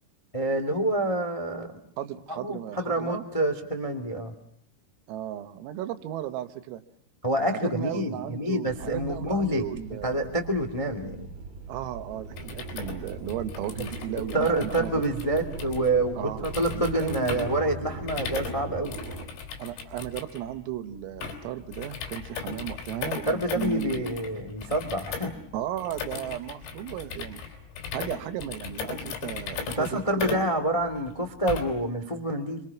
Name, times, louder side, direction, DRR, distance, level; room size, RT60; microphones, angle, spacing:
voice 1, 0.3-1.7 2.3-4.3 7.2-9.6 9.9-11.3 14.3-19.0 23.3-25.3 29.8-32.6, right 1 dB, 60° left, 7 dB, 0.3 m, -27 dB
voice 2, 2.0-3.3 5.1-6.8 7.5-10.2 11.7-15.1 16.2-16.4 16.7-17.4 19.6-24.1 25.5-27.4 27.9-30.4, right 11 dB, 85° right, 9 dB, 4.1 m, -35 dB
sound 1, 8.7-19.2, right 3 dB, 50° right, 4.4 m, -40 dB
sound 2, 12.3-31.9, left 6 dB, 80° left, 6.5 m, -38 dB
28.0 x 26.0 x 6.0 m, 0.69 s
omnidirectional pair, 5.9 m